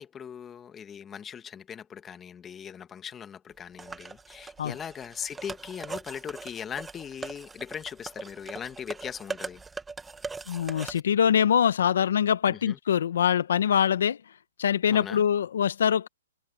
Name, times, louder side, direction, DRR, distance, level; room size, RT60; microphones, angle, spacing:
voice 1, 0.0-9.6 12.5-12.8 14.9-15.2, left 8 dB, 15° left, 1.5 m, -39 dB
sound 1, 3.8-11.0, right 4 dB, 5° right, 1.1 m, -41 dB
voice 2, 10.5-14.2 14.6-16.1, left 8 dB, 70° left, 1.2 m, -24 dB
hypercardioid pair, 160°, 0 cm